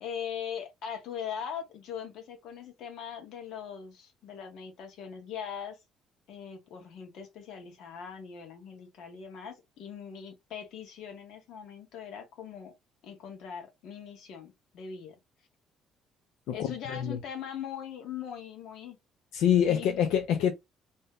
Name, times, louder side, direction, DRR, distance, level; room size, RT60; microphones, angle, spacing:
voice 1, 0.0-5.8 6.3-12.7 13.0-15.2 16.5-19.0 19.6-19.9, left 8 dB, 65° left, 1.0 m, -41 dB
voice 2, 16.5-17.2 19.3-20.5, left 9 dB, 85° left, 0.4 m, -26 dB
2.6 x 2.2 x 3.5 m
cardioid pair, 160°, 0 cm